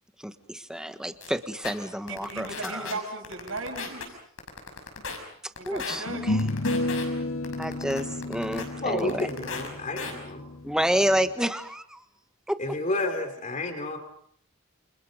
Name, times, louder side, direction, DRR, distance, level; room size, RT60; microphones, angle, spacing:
voice 1, 0.2-2.9 5.4-6.5 7.6-9.3 10.6-12.0 12.5-12.6, equal, 5° right, 9 dB, 1.3 m, -29 dB
sound 1, 1.2-1.3 1.6-1.7 2.1-2.9 3.2-4.0 4.4-5.2 5.6-6.0 6.4-7.0 7.4-8.6 9.0-9.7 10.0-10.1, left 5 dB, 70° left, 6.2 m, -35 dB
voice 2, 2.1-4.2 5.6-6.5, right 3 dB, 70° right, 2 dB, 7.8 m, -37 dB
sound 2, 5.0-5.1 6.1-11.3, left 2 dB, 90° left, 1.5 m, -32 dB
voice 3, 8.8-10.4 11.2-11.3 12.6-14.0, left 2 dB, 35° left, 6 dB, 3.3 m, -30 dB
29.0 x 28.5 x 5.2 m, 0.63 s
head